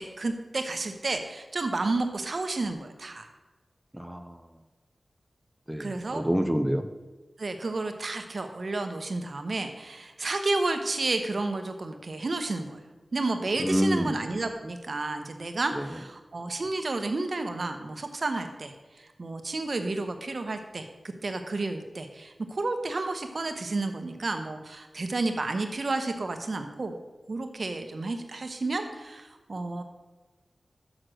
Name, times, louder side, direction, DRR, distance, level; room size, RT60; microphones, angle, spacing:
voice 1, 0.0-3.3 5.8-6.2 7.4-12.8 13.1-18.7 19.2-20.9 21.2-27.0 27.3-29.8, right 2 dB, 55° right, 7 dB, 0.9 m, -31 dB
voice 2, 3.9-4.4 5.7-6.8 13.6-14.1 15.7-15.9, equal, 5° right, 7 dB, 0.5 m, -27 dB
6.3 x 6.2 x 6.4 m, 1.2 s
wide cardioid pair, 90°, 0 cm